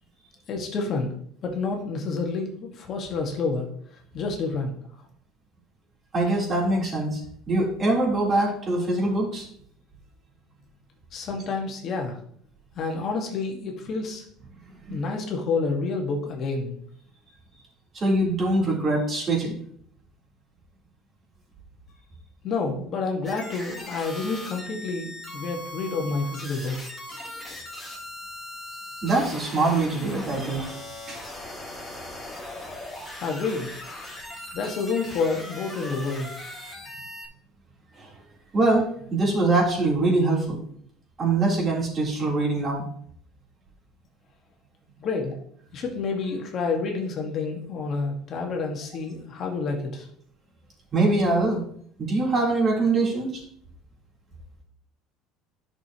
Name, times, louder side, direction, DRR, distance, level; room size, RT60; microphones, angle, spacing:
voice 1, 0.5-1.1 1.4-3.7 4.1-4.7 11.1-12.1 12.7-14.2 14.9-16.8 22.4-26.8 33.2-33.7 34.5-36.3 45.0-45.3 45.7-50.1, left 4 dB, 45° left, 2 dB, 1.8 m, -29 dB
voice 2, 6.1-7.2 7.5-9.5 14.9-15.0 17.9-19.6 29.0-30.8 31.1-31.2 37.9-38.1 38.5-40.6 41.2-42.9 50.9-51.6 52.0-53.4, right 2 dB, 35° right, -3 dB, 3.8 m, -23 dB
sound 1, 23.2-37.2, left 1 dB, 5° left, 2.8 m, -39 dB
11.0 x 6.5 x 3.1 m, 0.62 s
supercardioid pair, 115°, 0 cm